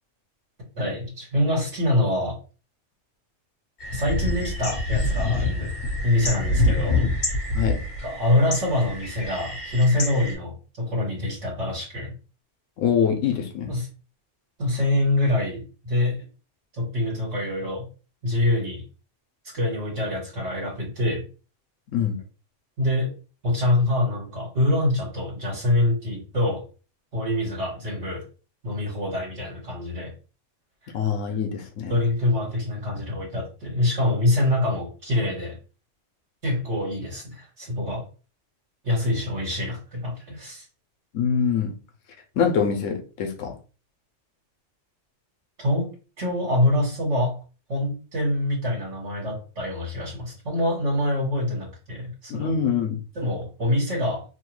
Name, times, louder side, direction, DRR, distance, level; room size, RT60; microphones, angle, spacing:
voice 1, 0.7-2.4 3.9-5.7 6.0-7.0 8.0-12.1 13.7-13.9 14.6-16.2 16.7-17.9 18.2-18.8 19.4-21.2 22.8-23.1 23.4-26.6 27.1-28.2 28.6-30.1 30.8-31.0 31.9-35.6 36.4-38.1 38.8-40.6 45.6-47.4 47.7-52.5 53.1-54.2, left 1 dB, 65° right, 1.6 m, -25 dB
sound 1, 3.8-10.3, left 2 dB, 40° left, 1.2 m, -26 dB
voice 2, 12.8-13.7 21.9-22.2 30.9-31.9 41.1-41.8 42.4-43.6 52.3-53.0, left 7 dB, 85° left, 1.0 m, -24 dB
3.0 x 2.2 x 3.0 m
omnidirectional pair, 1.3 m